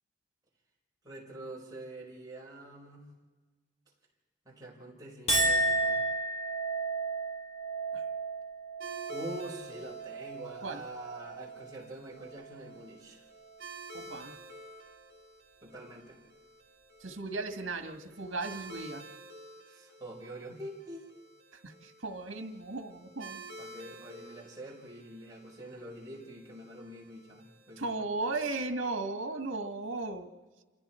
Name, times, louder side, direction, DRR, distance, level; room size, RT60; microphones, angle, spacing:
voice 1, 1.0-3.1 4.4-6.0 9.1-13.2 15.6-16.2 19.7-21.2 23.6-28.2, right 1 dB, 20° right, -3 dB, 5.0 m, -45 dB
Chink clink, 5.3-11.8 12.2-12.8, right 2 dB, 30° left, 3.7 m, -33 dB
sound 1, 8.8-27.9, right 2 dB, 50° right, 4.1 m, -51 dB
voice 2, 13.9-14.4 17.0-19.0 21.5-23.4 27.8-30.3, right 3 dB, 75° right, 6 dB, 1.8 m, -36 dB
28.5 x 27.5 x 4.5 m, 1.3 s
head